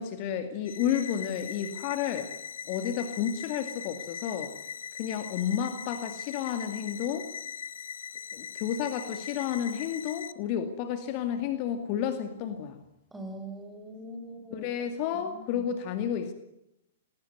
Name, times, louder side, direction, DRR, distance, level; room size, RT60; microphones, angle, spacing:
voice 1, 0.0-2.3 2.7-4.5 4.9-7.3 8.3-12.8 14.5-16.3, left 9 dB, 35° left, 8 dB, 2.2 m, -31 dB
sound 1, 0.7-10.3, left 7 dB, 60° left, 1.1 m, -41 dB
voice 2, 13.1-14.7 15.1-15.7, right 1 dB, 5° right, 5 dB, 5.3 m, -42 dB
20.5 x 18.5 x 9.5 m, 0.84 s
figure-of-eight pair, 110°, 0 cm